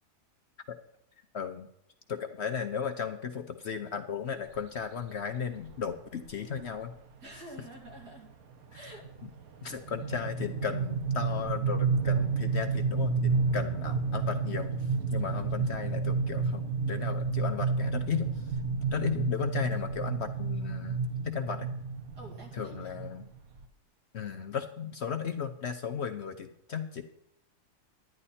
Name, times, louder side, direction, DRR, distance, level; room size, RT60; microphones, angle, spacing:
voice 1, 1.3-1.7 2.1-6.9 8.7-8.9 9.6-14.7 15.1-18.4 18.7-21.7 22.5-23.3 24.1-27.0, left 7 dB, 55° left, 7 dB, 0.8 m, -35 dB
sound 1, 4.5-4.8 5.7-5.8 6.2-6.3 6.6-6.9 7.3-23.6, right 4 dB, 65° right, 1.3 m, -31 dB
voice 2, 7.2-8.3 8.7-9.1 22.1-22.9, right 1 dB, 85° right, -1 dB, 3.3 m, -48 dB
11.0 x 10.0 x 4.2 m, 0.81 s
omnidirectional pair, 1.7 m